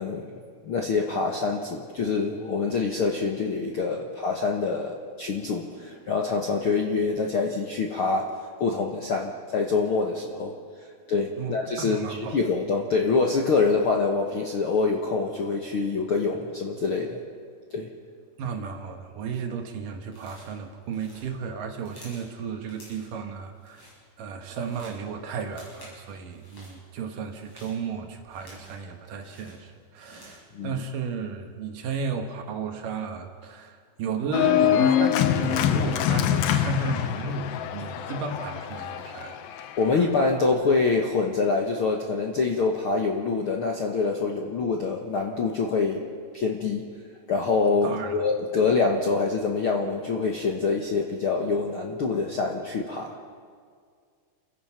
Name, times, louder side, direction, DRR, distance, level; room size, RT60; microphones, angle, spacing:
voice 1, 0.0-8.3 8.6-10.6 11.1-17.2 17.7-17.9 30.5-30.7 39.8-46.1 46.3-46.8 47.3-53.2, left 4 dB, 60° left, 1 dB, 1.4 m, -25 dB
voice 2, 11.4-12.4 18.4-23.9 24.2-39.4 47.8-48.2, right 5 dB, 65° right, 4 dB, 2.8 m, -34 dB
sound 1, 20.1-20.6 20.9-22.3 22.7-23.2 23.5-24.0 24.3-25.0 25.4-26.0 26.3-26.8 27.3-28.9 29.2-30.5, equal, 40° left, 7.9 m, -51 dB
Organ, 34.3-40.0, left 10 dB, 80° left, 2.7 m, -24 dB
30.0 x 15.5 x 5.8 m, 2.1 s
omnidirectional pair, 4.3 m